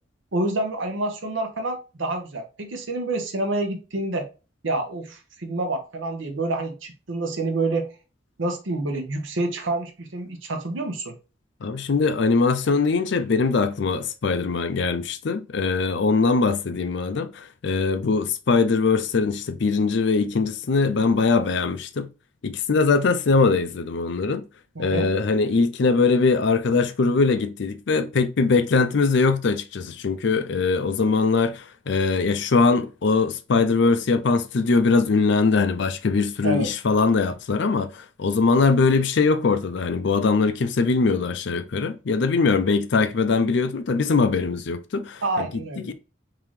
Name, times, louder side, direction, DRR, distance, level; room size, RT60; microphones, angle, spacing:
voice 1, 0.3-4.3 4.6-7.9 8.4-11.1 24.7-25.1 36.4-36.7 45.2-45.9, right 2 dB, 75° right, 0.9 m, -28 dB
voice 2, 11.6-22.1 22.4-24.4 24.8-45.5 45.9-46.0, left 4 dB, 60° left, 0.5 m, -21 dB
3.7 x 2.8 x 3.1 m
head